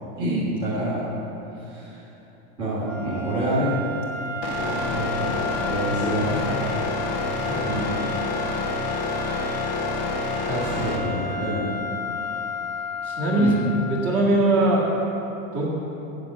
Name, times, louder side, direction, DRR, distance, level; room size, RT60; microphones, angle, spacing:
voice 1, 0.2-1.1 1.6-2.1 2.6-3.7 4.6-6.8 7.4-8.0 9.2-9.8 10.6-11.7 13.4-13.5, right 1 dB, 10° right, -10 dB, 1.5 m, -28 dB
sound 1, 2.8-14.3, left 4 dB, 65° right, 2.7 m, -33 dB
sound 2, 4.4-11.0, left 2 dB, 15° left, 0.4 m, -28 dB
voice 2, 13.0-13.5 13.9-14.9 15.5-15.7, right 2 dB, 30° right, -4 dB, 1.8 m, -21 dB
7.9 x 7.6 x 8.5 m, 3.0 s
supercardioid pair, 175°, 41 cm